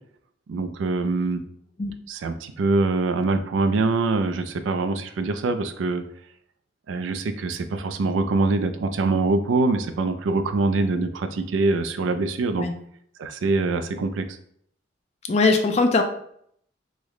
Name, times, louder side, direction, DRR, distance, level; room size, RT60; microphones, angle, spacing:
voice 1, 0.5-1.4 2.1-6.0 6.9-12.7 13.2-14.4, right 3 dB, 85° right, 8 dB, 0.4 m, -24 dB
voice 2, 15.3-16.0, left 3 dB, 35° left, 6 dB, 0.4 m, -20 dB
3.2 x 2.1 x 3.6 m, 0.67 s
head